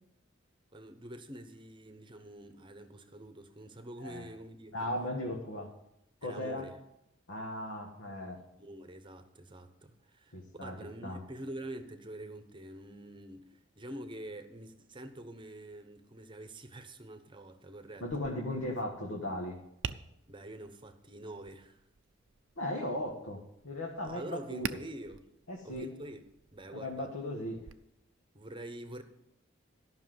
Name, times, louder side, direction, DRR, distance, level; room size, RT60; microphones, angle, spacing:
voice 1, 0.7-4.9 6.2-6.7 8.6-18.1 20.3-21.8 24.0-25.3 25.6-26.2 26.5-27.1 28.3-29.0, right 1 dB, 25° right, 0.9 m, -46 dB
voice 2, 4.7-5.7 6.2-6.7 7.3-8.4 10.3-10.8 11.0-11.2 18.0-19.6 22.6-23.4 23.6-24.8 25.5-25.9 26.7-27.6, left 1 dB, 75° left, 1.7 m, -37 dB
Tap, 18.0-27.7, right 6 dB, 65° right, 0.5 m, -47 dB
13.0 x 6.0 x 7.8 m
head